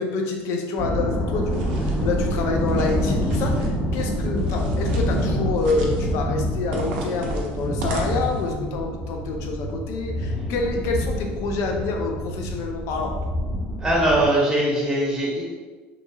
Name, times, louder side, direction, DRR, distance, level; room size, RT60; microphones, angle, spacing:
voice 1, 0.0-13.2, left 3 dB, 70° left, 2 dB, 0.5 m, -27 dB
sound 1, 0.8-14.3, equal, 35° left, 0.9 m, -26 dB
sound 2, 1.4-2.1 2.6-3.7 4.4-5.3 5.5-6.1 6.7-8.5, right 3 dB, 90° right, 0.5 m, -37 dB
voice 2, 13.8-15.6, right 1 dB, 10° right, -4 dB, 1.0 m, -21 dB
3.0 x 2.5 x 2.3 m, 1.3 s
supercardioid pair, 95°, 5 cm